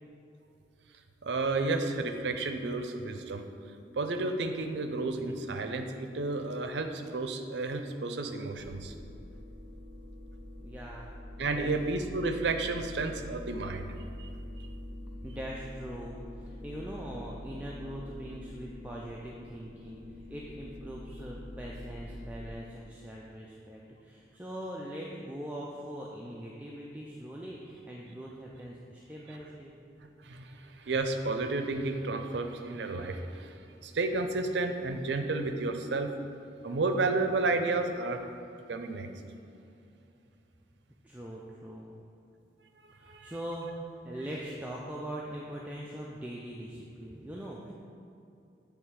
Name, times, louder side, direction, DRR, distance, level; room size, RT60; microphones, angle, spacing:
voice 1, 1.2-3.4 3.9-8.9 11.4-13.9 14.2-14.3 14.6-14.7 29.3-29.4 30.2-36.1 36.6-38.2 38.7-39.1 42.9-43.3, right 3 dB, 90° right, 7 dB, 0.5 m, -32 dB
sound 1, 8.5-22.5, left 1 dB, 90° left, 1.2 m, -45 dB
voice 2, 10.6-11.1 11.4-11.7 15.2-29.7 41.0-41.9 43.0-47.7, right 1 dB, 10° right, -4 dB, 0.4 m, -42 dB
8.3 x 3.3 x 4.7 m, 2.7 s
head